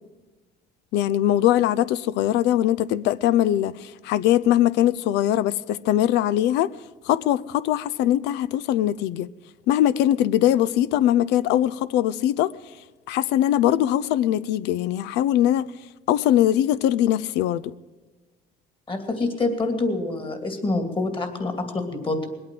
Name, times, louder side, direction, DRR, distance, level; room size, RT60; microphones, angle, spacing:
voice 1, 0.9-6.7 7.1-9.3 9.7-12.5 13.1-15.7 16.1-17.7, left 12 dB, 90° left, 0.5 m, -21 dB
voice 2, 18.9-22.3, left 2 dB, 30° left, 2.6 m, -26 dB
21.0 x 8.8 x 7.7 m
cardioid pair, 110°, 17 cm